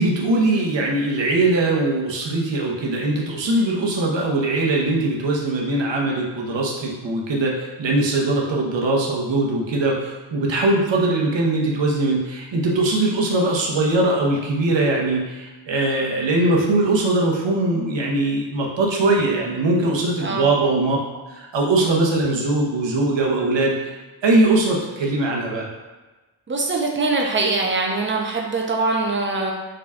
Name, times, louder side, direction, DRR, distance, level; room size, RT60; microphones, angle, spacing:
voice 1, 0.0-21.0 21.3-23.9 24.2-25.7, right 2 dB, 65° right, -2 dB, 0.8 m, -21 dB
voice 2, 26.5-29.5, right 3 dB, 25° right, 0 dB, 0.5 m, -22 dB
3.7 x 2.2 x 3.4 m, 1.2 s
wide cardioid pair, 125°, 47 cm